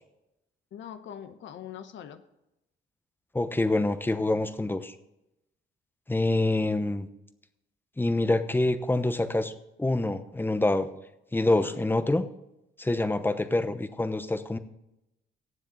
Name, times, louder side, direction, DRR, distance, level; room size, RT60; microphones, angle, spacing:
voice 1, 0.7-2.2 11.5-11.8, left 9 dB, 70° left, 9 dB, 1.0 m, -42 dB
voice 2, 3.3-4.9 6.1-7.1 8.0-10.9 11.3-12.3 12.8-14.6, left 2 dB, 10° left, 11 dB, 0.9 m, -26 dB
17.5 x 7.4 x 4.0 m, 0.88 s
cardioid pair, 90°, 20 cm